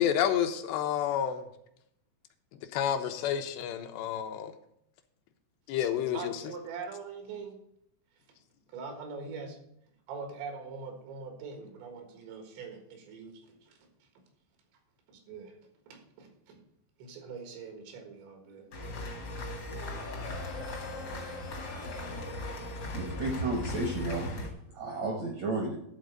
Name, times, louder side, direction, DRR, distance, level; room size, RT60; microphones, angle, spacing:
voice 1, 0.0-1.4 2.7-4.5 5.7-6.3, left 9 dB, 80° left, 7 dB, 2.8 m, -29 dB
voice 2, 6.1-7.6 8.7-9.6 10.1-13.8 15.1-15.5 15.9-16.6 17.0-19.2, right 5 dB, 90° right, 4 dB, 3.9 m, -43 dB
sound 1, 18.7-24.5, left 1 dB, 60° left, 1.0 m, -37 dB
voice 3, 22.9-24.5 24.7-25.8, right 2 dB, 70° right, 1 dB, 1.6 m, -33 dB
12.0 x 4.1 x 6.5 m, 0.75 s
omnidirectional pair, 5.0 m